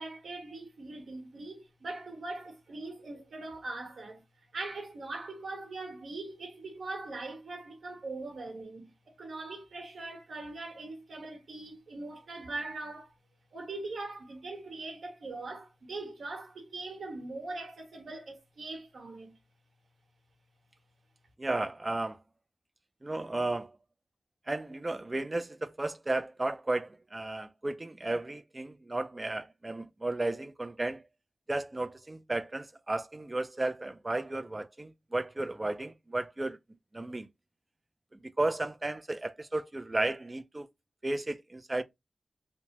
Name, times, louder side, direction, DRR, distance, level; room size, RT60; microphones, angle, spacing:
voice 1, 0.0-4.2 4.5-13.1 13.5-19.3, right 2 dB, 85° right, 1.1 m, -41 dB
voice 2, 21.4-22.2 23.0-23.8 24.5-31.0 31.5-36.6 36.9-37.3 38.1-40.7 41.0-41.8, right 2 dB, 30° right, 0.4 m, -34 dB
2.9 x 2.1 x 2.7 m
cardioid pair, 55°, 0 cm